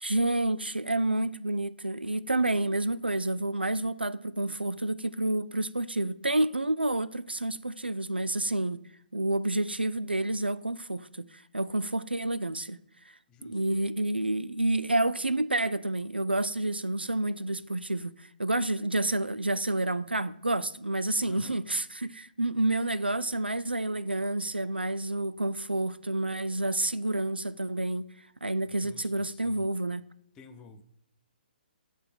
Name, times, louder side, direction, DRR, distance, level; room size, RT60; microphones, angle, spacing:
voice 1, 0.0-8.8 9.1-12.8 13.4-18.1 18.4-28.1 28.4-30.0, right 2 dB, 85° right, 0.3 m, -29 dB
voice 2, 13.3-13.8 21.3-21.6 28.7-29.7 30.3-30.8, left 4 dB, 15° left, 0.5 m, -52 dB
7.4 x 3.4 x 5.7 m
figure-of-eight pair, 135°, 5 cm